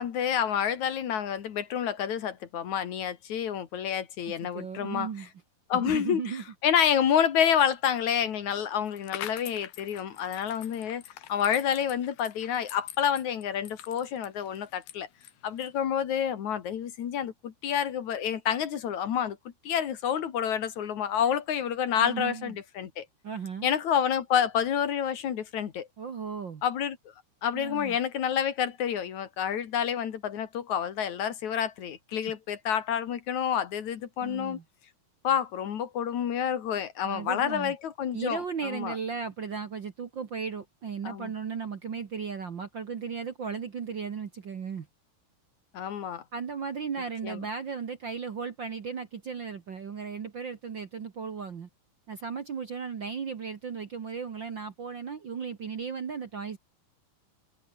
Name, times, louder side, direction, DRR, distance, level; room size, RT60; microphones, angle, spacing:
voice 1, 0.0-5.1 5.7-6.2 6.6-11.0 11.3-15.1 15.4-19.4 19.6-23.1 23.6-25.9 26.6-27.0 27.4-34.6 35.2-39.0 41.0-41.3 45.7-46.2 47.2-47.4, left 9 dB, 55° left, 2.8 m, -28 dB
voice 2, 4.2-5.3 5.7-6.4 22.0-22.5 23.2-23.7 26.0-26.6 27.5-28.0 34.2-34.6 37.0-37.7 38.1-44.9 46.3-51.7 52.1-56.6, right 6 dB, 60° right, 1.2 m, -36 dB
sound 1, 8.9-15.8, left 13 dB, 75° left, 3.2 m, -45 dB
omnidirectional pair, 4.5 m